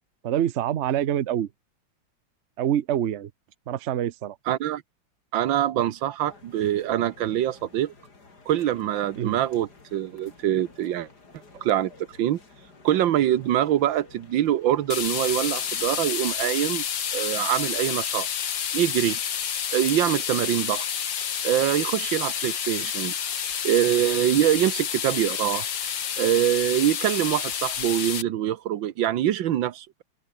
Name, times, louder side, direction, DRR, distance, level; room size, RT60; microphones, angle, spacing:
voice 1, 0.2-1.5 2.6-3.3 3.7-4.4 9.2-9.4, right 10 dB, 55° right, 0.8 m, -25 dB
voice 2, 4.5-4.8 5.3-7.9 8.5-11.1 11.6-11.9 12.2-12.4 12.8-16.8 17.1-18.3 18.7-19.2 19.7-20.9 21.4-23.1 23.6-25.7 26.2-30.0, right 12 dB, 85° right, 1.7 m, -24 dB
sound 1, 6.2-16.4, left 3 dB, 55° left, 4.4 m, -52 dB
sound 2, 14.9-28.2, left 8 dB, 80° left, 2.3 m, -29 dB
open air
omnidirectional pair, 2.0 m